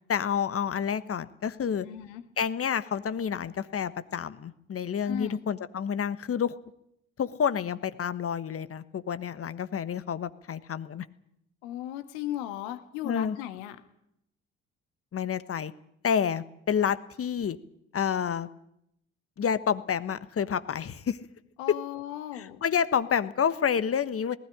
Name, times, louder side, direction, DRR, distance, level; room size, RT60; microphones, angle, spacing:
voice 1, 0.1-1.9 2.4-6.5 7.2-11.0 13.0-13.4 15.1-15.7 16.0-17.6 17.9-18.5 19.4-21.2 21.7-21.8 22.3-24.4, left 7 dB, 40° left, 14 dB, 1.3 m, -29 dB
voice 2, 1.8-2.2 5.0-5.4 11.6-13.8 21.6-22.6, left 12 dB, 75° left, 10 dB, 1.6 m, -36 dB
19.5 x 16.0 x 10.0 m, 0.78 s
hypercardioid pair, 45°, 33 cm